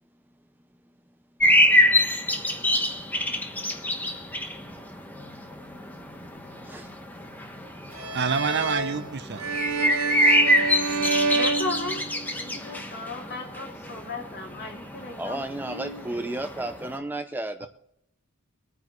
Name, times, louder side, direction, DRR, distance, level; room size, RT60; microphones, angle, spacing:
sound 1, 1.4-17.0, equal, 10° left, 1.3 m, -26 dB
sound 2, 7.9-12.5, right 4 dB, 85° right, 3.3 m, -28 dB
voice 1, 8.1-9.5, right 5 dB, 50° right, 0.7 m, -27 dB
voice 2, 11.3-16.4, left 2 dB, 50° left, 2.7 m, -36 dB
voice 3, 15.2-17.7, right 1 dB, 10° right, 0.6 m, -33 dB
23.5 x 9.5 x 3.1 m
head